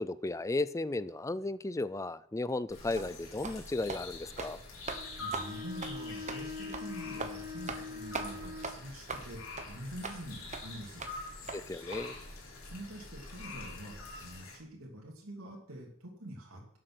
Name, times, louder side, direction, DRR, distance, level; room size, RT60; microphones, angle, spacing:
voice 1, 0.0-4.6 11.5-12.2, left 2 dB, 15° left, 0.4 m, -35 dB
sound 1, 2.7-14.6, left 2 dB, 80° left, 3.4 m, -46 dB
sound 2, 3.0-3.1 3.4-3.6 3.9-4.0 4.3-4.5 4.9-5.0 5.3-5.5 5.8-5.9 6.3-6.4 6.7-6.9 7.2-7.3 7.7-7.9 8.1-8.3 8.6-8.7 9.1-9.2 9.6-9.7 10.0-10.2 10.5-10.6 11.0-11.1 11.5-11.6 11.9-12.0, right 4 dB, 35° right, 1.1 m, -39 dB
Bowed string instrument, 4.9-8.8, left 4 dB, 15° right, 1.1 m, -43 dB
voice 2, 5.2-11.1 12.6-16.8, right 1 dB, 85° right, 2.7 m, -46 dB
12.0 x 7.7 x 6.1 m
head